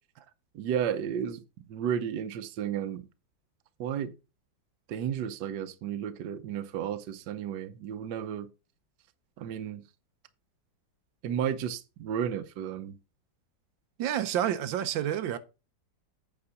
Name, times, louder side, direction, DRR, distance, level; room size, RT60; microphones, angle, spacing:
voice 1, 0.5-1.4 1.7-3.0 3.8-4.1 4.9-8.5 9.4-9.8 11.2-12.9, right 9 dB, 70° right, 1.4 m, -33 dB
voice 2, 14.0-15.4, right 10 dB, 90° right, 1.5 m, -29 dB
8.7 x 4.5 x 5.7 m
omnidirectional pair, 2.0 m